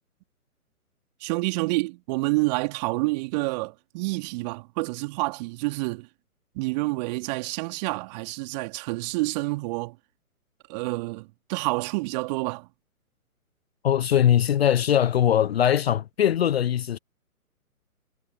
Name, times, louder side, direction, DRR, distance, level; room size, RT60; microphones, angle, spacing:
voice 1, 1.2-6.1 6.5-10.0 10.7-12.7, right 24 dB, 30° right, 2.8 m, -28 dB
voice 2, 13.8-17.0, left 10 dB, 45° left, 0.9 m, -21 dB
figure-of-eight pair, 130°, 44 cm